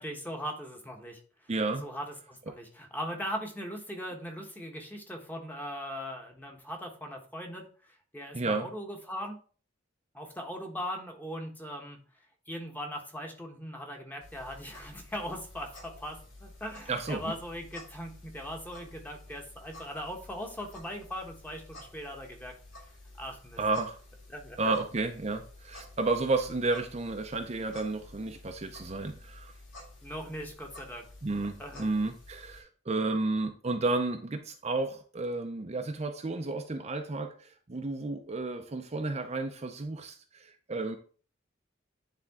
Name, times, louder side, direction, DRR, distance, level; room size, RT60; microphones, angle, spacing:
voice 1, 0.0-1.5 1.8-9.4 10.1-12.0 12.5-22.5 23.2-23.6 24.3-24.7 30.0-31.0 31.6-31.9, equal, 10° left, 2 dB, 1.1 m, -40 dB
voice 2, 1.5-1.8 8.3-8.7 16.9-17.3 23.6-24.0 24.6-29.5 31.2-41.0, right 3 dB, 35° right, 5 dB, 0.6 m, -32 dB
sound 1, 14.2-32.6, left 2 dB, 80° left, 4.0 m, -51 dB
9.8 x 3.6 x 3.6 m, 0.40 s
head